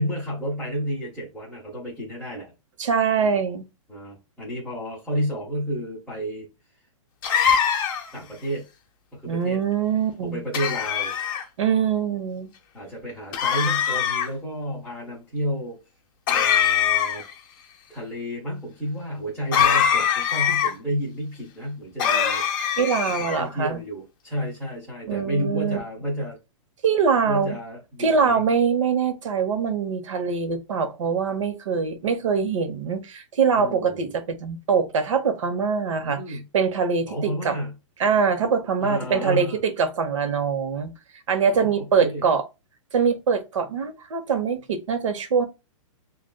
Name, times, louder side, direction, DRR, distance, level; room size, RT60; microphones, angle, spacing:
voice 1, 0.0-2.5 3.2-3.4 3.9-6.5 8.1-8.6 9.1-9.6 10.2-11.1 12.7-15.8 16.3-17.2 17.9-22.4 23.2-26.4 27.2-28.4 33.6-34.1 36.0-36.4 37.1-37.7 38.8-39.6 41.5-42.2, equal, ahead, 0.8 m, -31 dB
voice 2, 2.8-3.7 9.3-10.4 11.6-12.5 22.8-23.8 25.1-25.8 26.8-27.6 28.0-37.5 38.0-40.9 41.3-42.4 42.9-45.5, right 6 dB, 70° right, 0.9 m, -23 dB
sound 1, 7.2-8.2 10.5-11.4 13.3-14.3 16.3-17.3 19.5-20.7 22.0-23.4, left 8 dB, 40° left, 0.8 m, -22 dB
6.3 x 2.5 x 2.2 m
hypercardioid pair, 165°, 17 cm